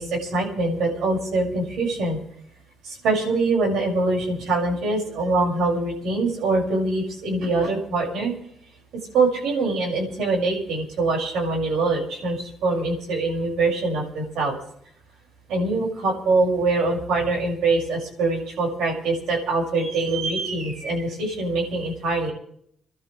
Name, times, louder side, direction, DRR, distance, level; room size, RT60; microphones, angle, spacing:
voice 1, 0.0-2.2 2.8-8.3 9.1-14.6 15.5-22.3, right 3 dB, 80° right, -1 dB, 5.9 m, -24 dB
29.0 x 12.5 x 3.3 m, 0.67 s
cardioid pair, 90°, 0 cm